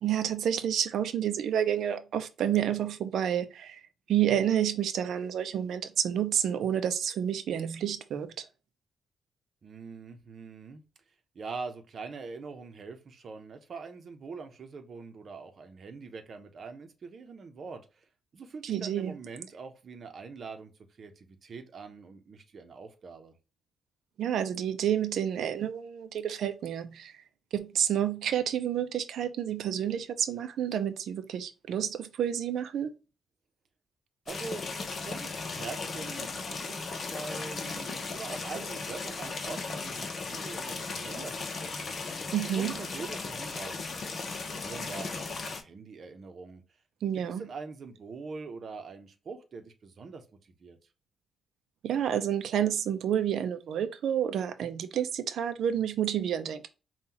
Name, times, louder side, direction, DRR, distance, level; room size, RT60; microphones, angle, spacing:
voice 1, 0.0-3.8 4.1-8.5 18.6-19.1 24.2-27.1 27.5-32.9 42.3-42.8 47.0-47.4 51.8-56.7, right 9 dB, 80° right, 0.5 m, -29 dB
voice 2, 9.6-10.8 11.3-18.0 18.3-20.7 21.0-23.4 34.3-41.9 42.5-46.6 47.1-50.2 50.6-50.8, right 4 dB, 50° right, 0.8 m, -43 dB
sound 1, 34.3-45.6, left 4 dB, 50° left, 0.8 m, -36 dB
5.5 x 2.4 x 2.9 m
cardioid pair, 110°, 0 cm